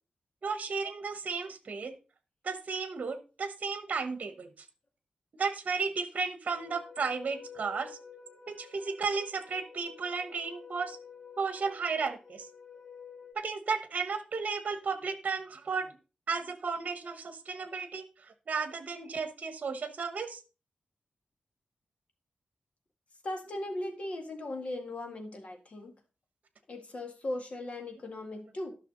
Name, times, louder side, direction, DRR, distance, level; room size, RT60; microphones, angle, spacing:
voice 1, 0.4-1.9 2.4-4.5 5.4-8.0 8.5-11.0 11.4-12.5 13.3-15.9 16.3-20.4, right 5 dB, 60° right, 10 dB, 1.1 m, -34 dB
sound 1, 6.5-13.3, left 6 dB, 30° left, 1.2 m, -50 dB
voice 2, 23.2-25.9 26.7-28.7, left 1 dB, 45° left, 4 dB, 1.9 m, -38 dB
12.0 x 6.1 x 3.9 m, 0.32 s
wide cardioid pair, 155°, 3 cm